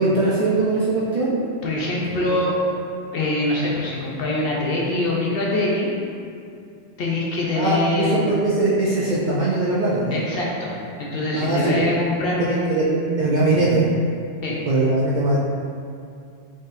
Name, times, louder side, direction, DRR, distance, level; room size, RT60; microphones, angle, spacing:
voice 1, 0.0-1.4 2.3-2.4 7.5-10.2 11.3-11.8 12.4-12.9 13.2-13.8 14.7-15.4, right 2 dB, 60° right, -7 dB, 0.5 m, -21 dB
voice 2, 1.6-2.5 3.1-5.9 7.0-8.4 10.1-13.4 14.4-14.6, left 2 dB, 60° left, -3 dB, 0.7 m, -24 dB
4.0 x 3.8 x 2.5 m, 2.4 s
omnidirectional pair, 1.3 m